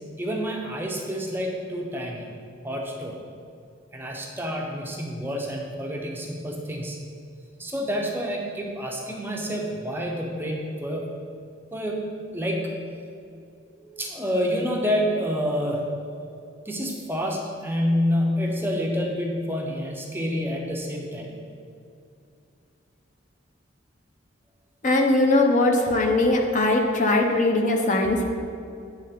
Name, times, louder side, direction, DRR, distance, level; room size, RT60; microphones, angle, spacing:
voice 1, 0.2-2.2 2.6-3.2 3.9-7.0 7.6-11.1 11.7-12.0 12.3-12.7 13.8-15.8 16.7-21.3, equal, 10° right, 0 dB, 0.6 m, -28 dB
voice 2, 24.8-28.2, left 2 dB, 40° left, 2 dB, 0.7 m, -20 dB
8.9 x 3.6 x 5.8 m, 2.5 s
head